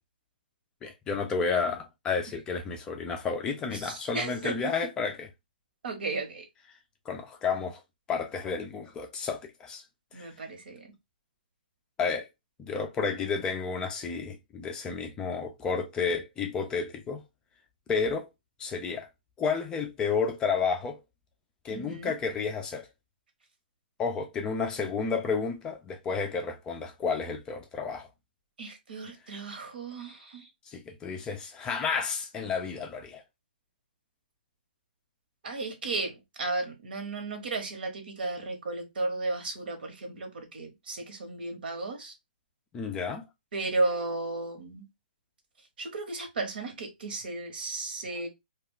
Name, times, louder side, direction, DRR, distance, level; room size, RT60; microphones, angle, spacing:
voice 1, 0.8-5.3 7.1-7.8 8.1-9.8 10.1-10.3 12.0-12.3 12.6-17.2 17.9-18.3 18.6-19.1 19.4-21.0 21.6-22.9 24.0-28.1 30.7-33.2 42.7-43.3, left 5 dB, 15° left, 0.4 m, -31 dB
voice 2, 3.7-4.7 5.8-6.5 10.1-10.9 21.7-22.1 28.6-30.5 35.4-42.1 43.5-44.8 45.8-48.3, right 3 dB, 70° right, 1.1 m, -34 dB
2.3 x 2.2 x 3.7 m
hypercardioid pair, 150°, 5 cm